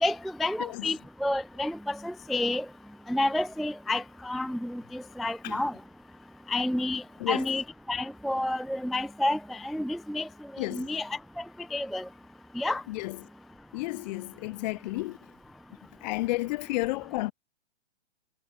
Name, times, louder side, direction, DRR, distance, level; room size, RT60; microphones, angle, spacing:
voice 1, 0.0-2.7 3.1-5.7 6.5-10.3 10.5-11.4 11.7-12.1 12.6-12.8, left 1 dB, ahead, 0.4 m, -30 dB
voice 2, 10.6-10.9 12.9-13.2 13.7-15.2 16.0-17.3, left 21 dB, 40° left, 1.8 m, -32 dB
figure-of-eight pair, 120°, 34 cm